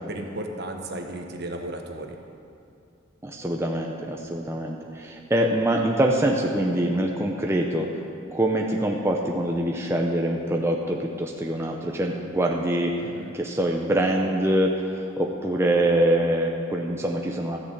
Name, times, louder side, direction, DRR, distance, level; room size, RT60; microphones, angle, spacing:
voice 1, 0.0-2.2 13.0-13.3, right 1 dB, 55° right, 4 dB, 1.2 m, -34 dB
voice 2, 3.2-8.0 8.3-13.1 13.3-17.6, right 1 dB, 15° right, 0 dB, 0.7 m, -24 dB
13.0 x 6.9 x 8.1 m, 2.5 s
head